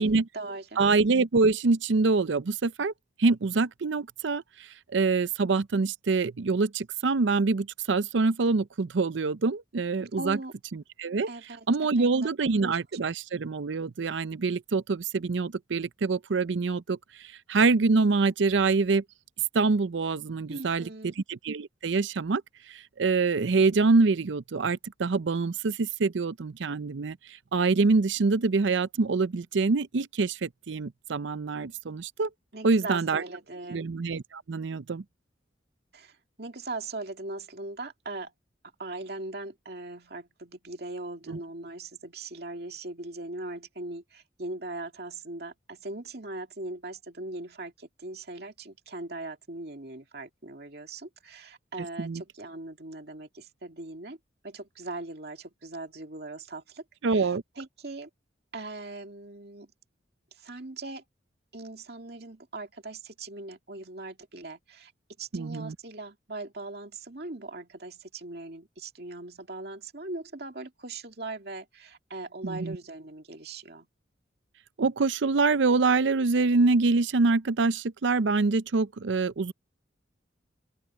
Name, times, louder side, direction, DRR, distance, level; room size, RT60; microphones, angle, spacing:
voice 1, 0.0-0.8 10.2-10.5 11.3-11.7 12.0-12.7 20.5-21.1 32.5-33.9 35.9-36.1 36.4-38.3 38.8-54.2 54.4-56.8 57.1-58.1 58.5-59.7 60.4-61.0 61.5-64.9 65.2-73.9, right 2 dB, 55° right, 2.5 m, -40 dB
voice 2, 0.8-2.9 3.2-4.4 4.9-10.4 10.7-11.3 11.7-19.0 19.5-22.4 22.7-32.3 32.6-33.2 33.7-35.0 41.3-41.4 52.0-52.2 57.0-57.4 65.3-65.8 72.4-72.8 74.8-79.5, right 4 dB, 75° right, 0.6 m, -25 dB
open air
head